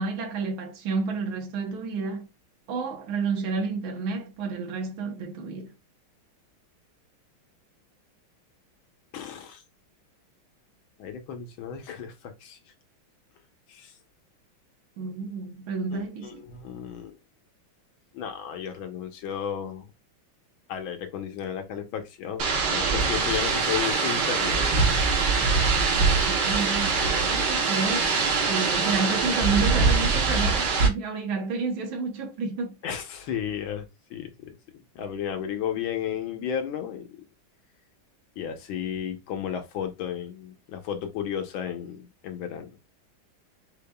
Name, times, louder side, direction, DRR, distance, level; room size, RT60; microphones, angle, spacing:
voice 1, 0.0-2.3 2.7-5.7 15.0-16.4 25.8-28.1 28.5-32.8, right 4 dB, 75° right, 1.8 m, -30 dB
voice 2, 9.1-9.6 11.0-12.6 13.7-13.9 15.9-17.2 18.1-19.9 20.7-24.7 32.8-34.5 34.9-37.2 38.4-42.8, left 9 dB, 75° left, 1.7 m, -33 dB
sound 1, 22.4-30.9, right 4 dB, 60° right, 1.6 m, -23 dB
6.7 x 2.9 x 2.3 m
omnidirectional pair, 2.3 m